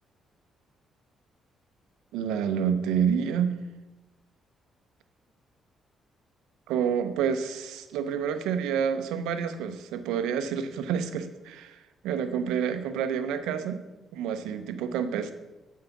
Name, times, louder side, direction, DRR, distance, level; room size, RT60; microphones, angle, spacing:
voice 1, 2.1-3.5 6.7-11.8 12.0-13.8 14.1-15.3, right 7 dB, 85° right, 10 dB, 0.7 m, -28 dB
7.7 x 4.7 x 7.1 m, 1.1 s
supercardioid pair, 65°, 0 cm